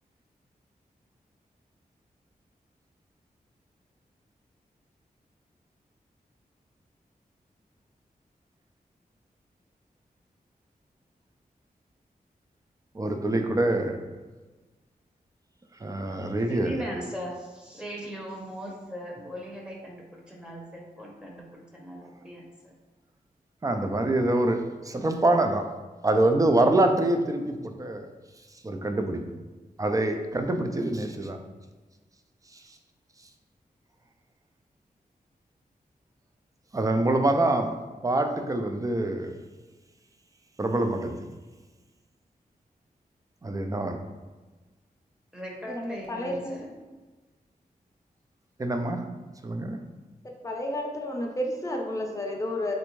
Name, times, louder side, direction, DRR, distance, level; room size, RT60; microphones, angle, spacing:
voice 1, 12.9-14.0 15.8-16.9 23.6-25.7 26.0-28.1 28.6-29.2 29.8-31.4 32.5-32.8 36.7-37.7 38.0-39.4 40.6-41.2 43.4-44.0 48.6-49.0 49.4-49.8, right 2 dB, 20° right, 5 dB, 0.4 m, -25 dB
voice 2, 16.5-22.7 45.3-46.7, equal, 5° right, -2 dB, 0.9 m, -39 dB
voice 3, 45.7-46.6 50.4-52.7, left 1 dB, 20° left, 0 dB, 0.6 m, -31 dB
3.3 x 2.6 x 3.1 m, 1.3 s
cardioid pair, 55°, 16 cm